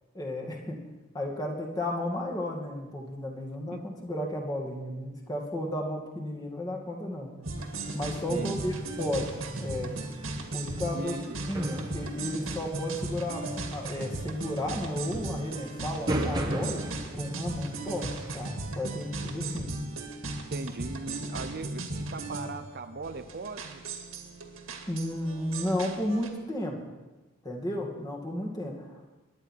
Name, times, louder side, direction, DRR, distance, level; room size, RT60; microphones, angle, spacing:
voice 1, 0.1-0.8 1.1-7.3 7.9-9.3 9.6-9.9 10.5-11.2 11.5-16.8 17.2-19.7 24.9-26.8 27.4-29.1, left 1 dB, 15° left, -1 dB, 2.3 m, -33 dB
sound 1, 7.4-26.3, right 2 dB, 65° right, 2.0 m, -36 dB
sound 2, 7.6-18.5, right 1 dB, 20° right, 1.1 m, -39 dB
voice 2, 8.3-8.6 10.9-11.4 20.5-23.8, right 3 dB, 45° right, 9 dB, 0.6 m, -39 dB
23.5 x 10.5 x 4.6 m, 1.1 s
head